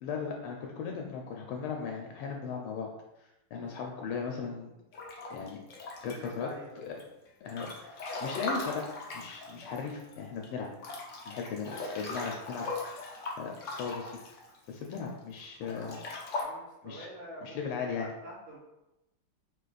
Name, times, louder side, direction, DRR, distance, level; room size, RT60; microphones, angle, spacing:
voice 1, 0.0-2.9 3.5-4.7 5.3-5.6 6.0-6.5 6.9-7.0 7.4-8.9 9.1-10.7 11.3-12.7 13.0-14.1 14.7-16.0 16.8-17.1 17.4-18.1, left 5 dB, 85° left, 1 dB, 1.4 m, -37 dB
Breathing / Bathtub (filling or washing) / Splash splatter, 4.9-6.5 7.0-10.2 10.4-10.5 10.8-15.0 15.6-16.4, left 2 dB, 65° left, 0.7 m, -39 dB
voice 2, 6.1-6.8 10.9-11.0 16.4-18.6, equal, 70° right, -14 dB, 2.6 m, -46 dB
4.9 x 2.4 x 3.9 m, 0.93 s
omnidirectional pair, 2.3 m